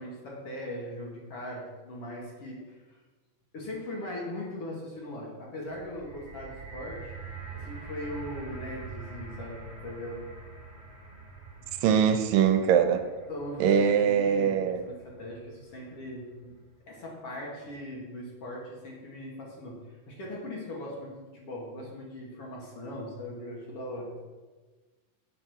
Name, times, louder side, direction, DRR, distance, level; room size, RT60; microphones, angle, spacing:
voice 1, 0.0-2.8 3.5-7.1 7.5-10.3 13.3-16.5 16.9-19.8 20.1-24.3, left 1 dB, 45° left, -3 dB, 2.6 m, -39 dB
sound 1, 5.7-15.9 16.6-16.7, right 4 dB, 20° left, 3.9 m, -45 dB
voice 2, 11.8-13.0 13.6-14.8, right 8 dB, 80° right, 8 dB, 2.3 m, -22 dB
8.2 x 7.7 x 6.1 m, 1.3 s
omnidirectional pair, 4.0 m